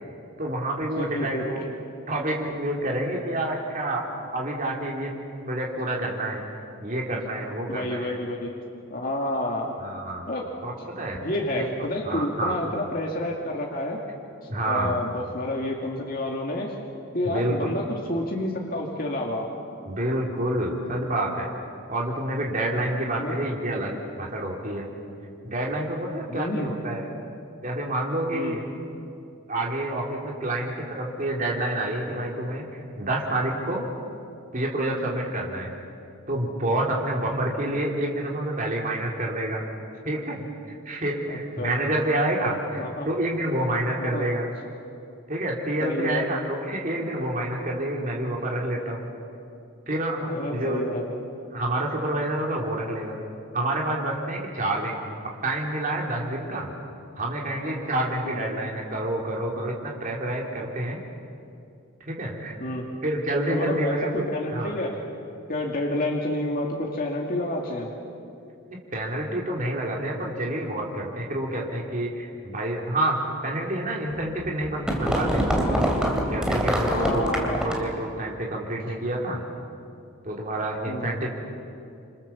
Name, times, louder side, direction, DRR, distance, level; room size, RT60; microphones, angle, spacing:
voice 1, 0.4-1.6 2.1-4.0 4.3-5.1 5.4-6.4 6.8-8.1 9.8-10.3 10.6-11.7 12.0-12.6 14.5-15.0 17.2-17.7 19.8-21.5 21.9-24.9 25.4-27.0 27.6-28.6 29.5-33.8 34.5-35.8 36.3-39.6 40.0-40.5 40.8-44.5 45.3-49.1 49.9-50.8 51.5-53.2 53.5-55.0 55.4-56.7 57.2-61.0 62.1-62.5 63.0-64.2 64.5-64.8 68.7-75.5 76.3-79.4 80.2-81.3, right 1 dB, 40° right, -1 dB, 3.3 m, -28 dB
voice 2, 1.0-1.4 7.7-8.5 8.9-9.7 10.3-10.5 11.2-14.0 14.6-16.7 17.1-19.5 23.2-23.3 26.3-26.7 28.3-28.6 37.6-37.7 41.3-41.7 42.8-43.1 44.0-44.3 45.8-46.3 50.3-51.2 58.2-58.4 62.6-62.9 63.5-65.0 65.5-67.9 76.9-77.7 80.9-81.2, left 1 dB, 45° left, -1 dB, 2.5 m, -29 dB
sound 1, 74.2-78.0, equal, 5° right, 2.8 m, -25 dB
27.5 x 26.5 x 7.2 m, 2.5 s
head